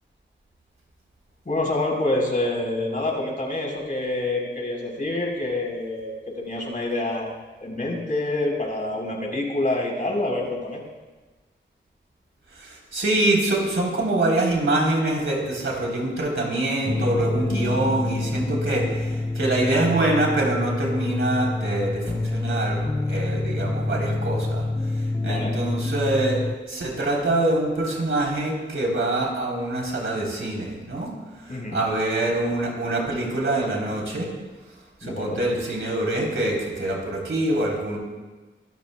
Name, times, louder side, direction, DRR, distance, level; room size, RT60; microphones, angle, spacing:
voice 1, 1.5-7.3 7.6-10.8 25.1-25.5 31.5-31.8 35.0-35.4, left 2 dB, 45° left, -2 dB, 3.9 m, -27 dB
voice 2, 12.6-22.8 23.1-24.6 25.2-26.4 26.7-31.1 31.7-34.3 35.0-38.0, right 2 dB, 85° right, -2 dB, 3.4 m, -24 dB
sound 1, 16.9-26.6, left 2 dB, 15° left, 0.3 m, -27 dB
23.5 x 14.0 x 2.2 m, 1.2 s
wide cardioid pair, 80°, 20 cm